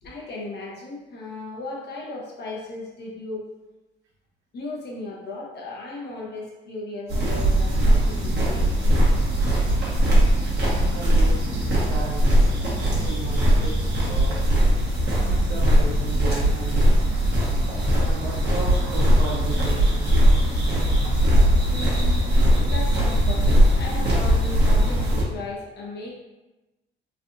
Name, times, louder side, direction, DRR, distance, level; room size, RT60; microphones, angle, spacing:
voice 1, 0.0-3.5 4.5-8.8 9.4-9.6 21.6-26.2, left 2 dB, 60° left, -3 dB, 0.9 m, -36 dB
sound 1, 7.1-25.2, equal, 55° right, 1.1 m, -20 dB
voice 2, 10.9-13.8 14.0-14.5 15.2-16.9 17.9-20.3, right 3 dB, 85° right, -3 dB, 1.0 m, -35 dB
3.3 x 2.4 x 2.5 m, 1.1 s
cardioid pair, 90°, 20 cm